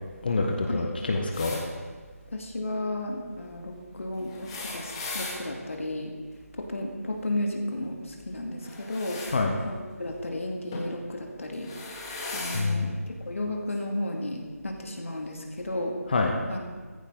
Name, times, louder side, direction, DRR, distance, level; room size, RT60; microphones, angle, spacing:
voice 1, 0.2-1.6 9.3-9.6 12.5-13.0 16.1-16.4, left 3 dB, 35° left, 2 dB, 1.3 m, -26 dB
sound 1, 1.3-1.6 4.2-5.4 8.6-9.3 10.7-10.9 11.5-12.6 13.7-13.8 15.0-15.1, left 3 dB, 20° left, 2.1 m, -37 dB
voice 2, 2.3-6.1 6.6-9.2 9.7-12.9 13.3-16.0 16.5-16.8, left 1 dB, 55° left, 1 dB, 2.3 m, -33 dB
15.5 x 15.0 x 3.9 m, 1.5 s
figure-of-eight pair, 160°, 9 cm